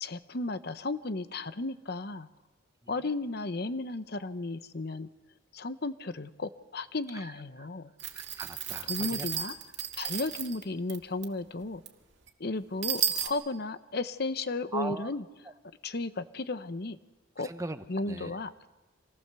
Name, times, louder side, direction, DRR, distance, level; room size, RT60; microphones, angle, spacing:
voice 1, 0.0-2.3 2.9-5.1 5.5-7.9 8.8-9.6 10.0-11.8 12.4-15.3 15.8-17.0 17.4-17.5 17.9-18.7, left 2 dB, 50° left, 12 dB, 0.9 m, -34 dB
sound 1, 8.0-10.6 10.9-11.0 11.2-11.3 11.9-12.0 12.3-12.4 12.8-13.3, right 9 dB, 65° right, 2.0 m, -33 dB
voice 2, 8.1-9.3 14.7-15.1 17.4-18.3, right 2 dB, 15° right, 9 dB, 0.9 m, -39 dB
26.0 x 18.5 x 6.8 m, 1.2 s
head